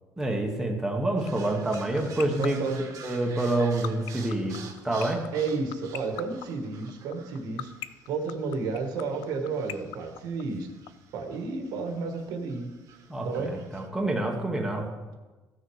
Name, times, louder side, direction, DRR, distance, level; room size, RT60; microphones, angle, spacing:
voice 1, 0.2-5.3 13.1-14.9, right 1 dB, 5° right, 0 dB, 1.1 m, -28 dB
sound 1, 1.2-13.9, right 6 dB, 50° right, 1.4 m, -50 dB
sound 2, 1.3-10.9, left 16 dB, 80° left, 0.5 m, -36 dB
voice 2, 2.4-2.8 5.3-7.7 8.1-10.7 11.1-12.7 13.2-13.5, right 4 dB, 70° right, 5 dB, 1.6 m, -31 dB
14.5 x 6.5 x 4.8 m, 1.2 s
cardioid pair, 160°, 7 cm